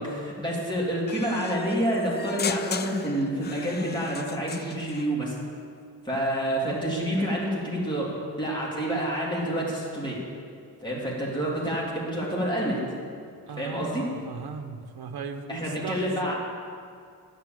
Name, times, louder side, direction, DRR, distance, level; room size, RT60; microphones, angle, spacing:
voice 1, 0.0-5.4 6.0-10.2 10.8-12.8 13.6-14.0 15.5-16.3, equal, 10° left, -5 dB, 3.3 m, -28 dB
sound 1, 1.1-5.1, left 6 dB, 25° left, 0.3 m, -37 dB
voice 2, 13.5-16.3, right 5 dB, 65° right, 7 dB, 1.0 m, -37 dB
11.0 x 8.2 x 7.8 m, 2.3 s
wide cardioid pair, 140°, 40 cm